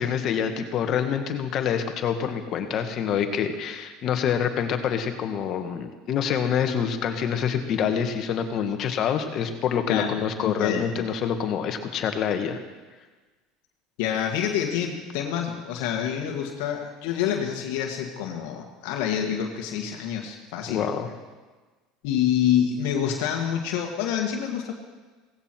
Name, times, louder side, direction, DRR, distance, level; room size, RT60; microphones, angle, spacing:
voice 1, 0.0-12.6 20.7-21.1, left 8 dB, 50° left, 7 dB, 1.7 m, -26 dB
voice 2, 10.4-11.0 14.0-20.8 22.0-24.7, left 9 dB, 75° left, 2 dB, 1.8 m, -27 dB
17.5 x 16.0 x 4.6 m, 1.3 s
supercardioid pair, 95°, 0 cm